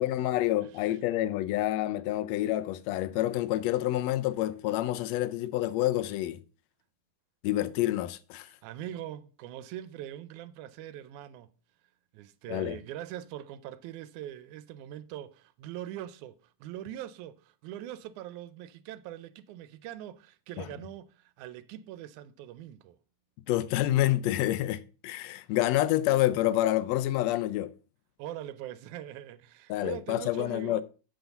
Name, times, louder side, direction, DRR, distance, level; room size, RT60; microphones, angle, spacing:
voice 1, 0.0-6.4 7.4-8.5 12.5-12.8 20.6-20.7 23.5-27.7 29.7-30.8, left 14 dB, 75° left, 1.6 m, -28 dB
voice 2, 0.6-1.0 8.6-11.5 12.1-23.0 28.2-30.8, right 12 dB, 80° right, 2.0 m, -42 dB
7.9 x 4.0 x 6.9 m
omnidirectional pair, 3.5 m